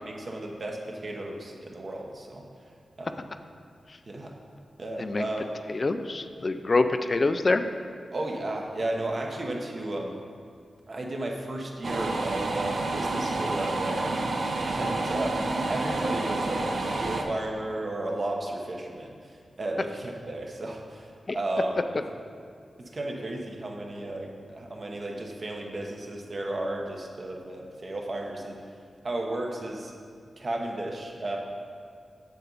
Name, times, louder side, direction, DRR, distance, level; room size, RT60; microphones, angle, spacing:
voice 1, 0.0-2.4 3.0-3.2 4.0-4.3 4.8-5.5 8.1-10.2 10.9-14.3 14.6-22.0 22.8-28.6 29.0-29.9 30.4-31.4, right 1 dB, 45° right, 0 dB, 0.9 m, -34 dB
voice 2, 5.7-7.7 21.3-21.4, left 3 dB, 40° left, 9 dB, 0.3 m, -25 dB
sound 1, 11.8-17.2, right 2 dB, 60° right, 0.6 m, -29 dB
7.4 x 6.9 x 4.0 m, 2.2 s
wide cardioid pair, 120°, 0 cm